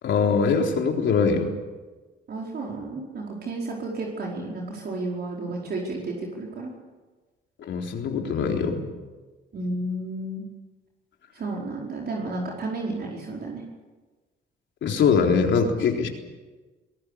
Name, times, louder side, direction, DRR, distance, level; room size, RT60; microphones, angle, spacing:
voice 1, 0.0-1.5 7.6-8.8 14.8-16.1, left 5 dB, 70° left, 2 dB, 3.8 m, -22 dB
voice 2, 2.3-6.7 9.5-10.4 11.3-13.6, right 2 dB, 55° right, -2 dB, 4.9 m, -32 dB
22.0 x 18.5 x 8.5 m, 1.3 s
cardioid pair, 90°, 20 cm